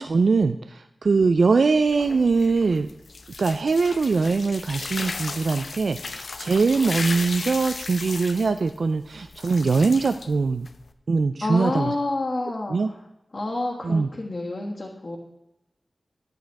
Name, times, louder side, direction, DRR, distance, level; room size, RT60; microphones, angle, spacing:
voice 1, 0.0-2.9 3.4-10.7 11.1-11.9 12.7-12.9 13.8-14.1, right 4 dB, 75° right, 10 dB, 0.3 m, -22 dB
sound 1, 1.8-10.9, left 4 dB, 75° left, 0.7 m, -36 dB
voice 2, 11.4-13.0 13.3-15.2, left 2 dB, 50° left, -3 dB, 1.5 m, -28 dB
10.5 x 8.8 x 4.6 m, 0.91 s
wide cardioid pair, 100°, 0 cm